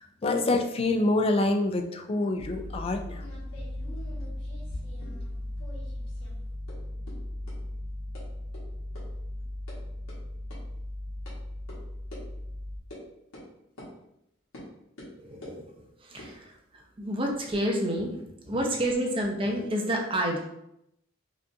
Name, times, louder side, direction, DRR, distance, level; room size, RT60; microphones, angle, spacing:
voice 1, 0.2-3.3, left 2 dB, 30° left, 5 dB, 0.3 m, -26 dB
sound 1, 2.4-12.8, left 1 dB, 60° left, 0.8 m, -37 dB
sound 2, 2.5-5.3 5.6-6.3 6.7-6.8 7.1-7.2 7.5-7.6 8.1-8.2 8.5-8.6 9.0-9.1 9.4-9.8 10.1-10.2 10.5-10.6 11.3-11.4 11.7-11.8 12.1-12.2 12.9-13.0 13.3-13.5 13.8-13.9 14.5-14.7 15.0-15.6 16.1-17.6, left 1 dB, 80° left, 1.4 m, -47 dB
voice 2, 15.2-15.6 16.0-20.4, equal, 25° right, 1 dB, 0.6 m, -29 dB
4.9 x 2.4 x 2.7 m, 0.80 s
head